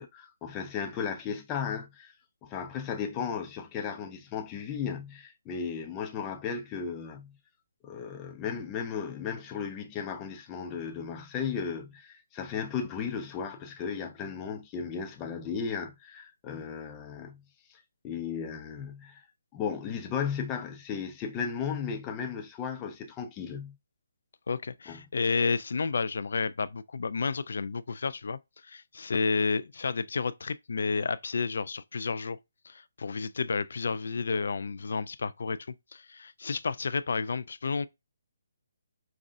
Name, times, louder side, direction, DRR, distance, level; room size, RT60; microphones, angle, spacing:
voice 1, 0.0-2.1 2.4-7.4 7.8-17.4 18.0-19.2 19.5-23.8 24.9-25.0, left 6 dB, 20° left, 0.6 m, -35 dB
voice 2, 24.5-32.4 32.6-35.6 35.9-37.9, left 4 dB, 65° left, 0.4 m, -31 dB
5.3 x 2.3 x 2.5 m
figure-of-eight pair, 150°, 0 cm